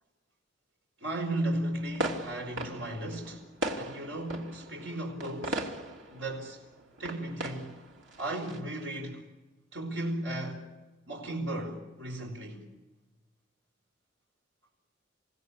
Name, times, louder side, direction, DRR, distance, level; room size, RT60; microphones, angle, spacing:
voice 1, 1.0-3.4 3.8-5.7 6.1-6.6 7.0-7.8 8.2-9.2 9.7-10.6 11.1-12.6, right 1 dB, 90° right, 5.0 m, -35 dB
sound 1, 1.8-8.6, right 1 dB, 70° right, 3.1 m, -38 dB
28.0 x 17.0 x 8.7 m
head